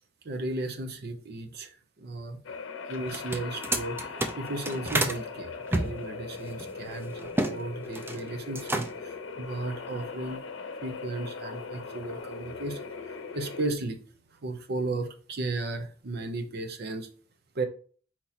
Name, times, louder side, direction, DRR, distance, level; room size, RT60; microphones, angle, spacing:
voice 1, 0.2-2.6 2.9-10.4 10.8-14.0 14.3-17.1 17.5-17.6, right 2 dB, 55° right, 0.7 m, -35 dB
sound 1, 2.4-13.7, left 4 dB, 75° left, 0.7 m, -40 dB
sound 2, 3.0-5.2 5.7-7.6 7.8-8.2 8.5-9.1, right 1 dB, 10° right, 0.4 m, -30 dB
4.3 x 2.9 x 4.0 m
head